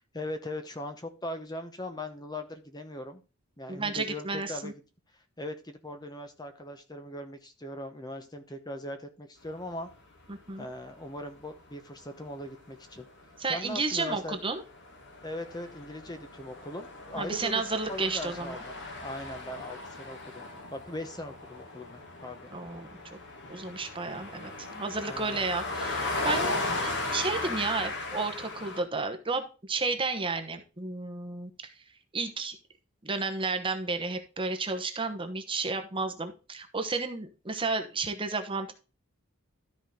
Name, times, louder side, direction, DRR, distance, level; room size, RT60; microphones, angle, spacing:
voice 1, 0.1-3.2 3.6-4.8 5.1-9.9 10.6-13.1 13.5-14.4 15.2-17.6 17.9-18.7 19.0-22.5 25.0-25.4, left 1 dB, 20° left, 7 dB, 0.9 m, -40 dB
voice 2, 3.7-4.7 10.3-10.7 13.4-14.6 17.1-18.6 22.5-22.9 23.5-31.7 32.1-32.6 33.0-38.7, right 3 dB, 25° right, 7 dB, 1.0 m, -32 dB
Traffic noise outside shopping centre, 10.0-10.3 11.0-11.1 11.4-28.8, left 2 dB, 55° left, 2.2 m, -37 dB
13.0 x 5.0 x 3.7 m, 0.32 s
head